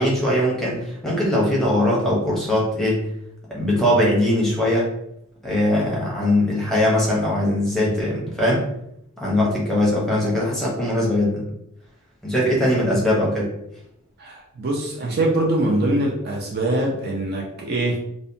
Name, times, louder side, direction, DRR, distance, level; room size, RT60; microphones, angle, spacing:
voice 1, 0.0-3.0 3.5-4.9 5.4-8.6 9.2-11.4 12.2-13.5, left 1 dB, ahead, -5 dB, 0.7 m, -21 dB
voice 2, 14.2-18.0, right 1 dB, 45° right, -1 dB, 0.4 m, -23 dB
2.7 x 2.1 x 2.6 m, 0.78 s
head